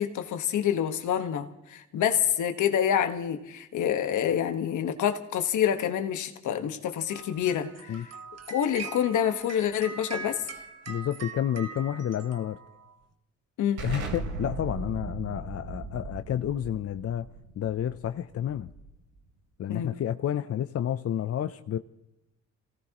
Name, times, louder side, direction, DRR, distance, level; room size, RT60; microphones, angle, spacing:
voice 1, 0.0-8.0 8.5-10.4 13.6-13.8 19.7-19.9, left 9 dB, 75° left, 7 dB, 1.5 m, -27 dB
sound 1, 7.1-13.0, right 5 dB, 55° right, 1.9 m, -42 dB
voice 2, 10.9-12.6 13.8-17.3 17.6-18.7 19.6-21.8, left 10 dB, 50° left, 10 dB, 0.7 m, -30 dB
Explosion, 13.8-19.2, right 3 dB, 85° right, 3.2 m, -38 dB
27.5 x 17.5 x 3.0 m, 0.91 s
cardioid pair, 90°, 30 cm